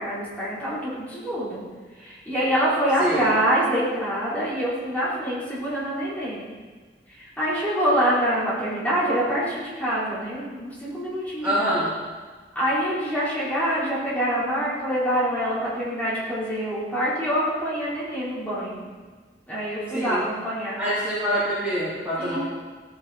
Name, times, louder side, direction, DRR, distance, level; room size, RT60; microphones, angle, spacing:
voice 1, 0.0-1.6 2.0-6.5 7.2-11.8 12.5-18.9 19.5-20.8 22.2-22.4, equal, 10° left, -10 dB, 4.6 m, -25 dB
voice 2, 11.4-11.9 19.9-20.2 20.8-22.4, equal, 10° right, -13 dB, 3.6 m, -25 dB
16.5 x 9.6 x 4.4 m, 1.4 s
head